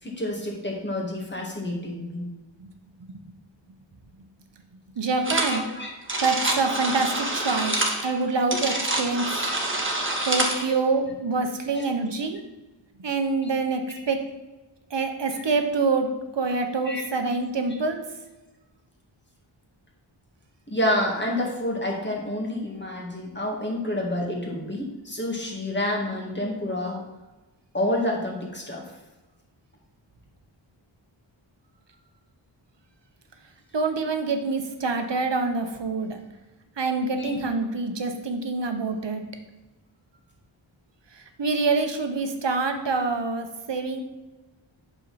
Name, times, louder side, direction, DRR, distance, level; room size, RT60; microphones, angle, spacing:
voice 1, 0.0-2.3 5.5-6.0 8.5-8.8 9.4-9.6 10.6-10.8 11.7-11.8 13.4-13.5 13.9-14.0 15.4-15.5 16.9-17.0 17.7-17.8 20.7-27.0 27.7-28.9 37.2-37.4, left 1 dB, 25° left, -1 dB, 2.1 m, -29 dB
voice 2, 5.0-5.6 6.2-7.7 8.0-9.2 10.3-12.4 13.0-13.8 14.1-14.2 14.9-16.1 16.3-18.0 33.7-36.2 36.8-39.2 41.4-44.0, right 4 dB, 65° right, 5 dB, 1.1 m, -26 dB
sound 1, 5.2-5.6 5.9-10.6, right 1 dB, 25° right, 1.5 m, -26 dB
8.7 x 6.4 x 4.2 m, 1.1 s
wide cardioid pair, 95°, 46 cm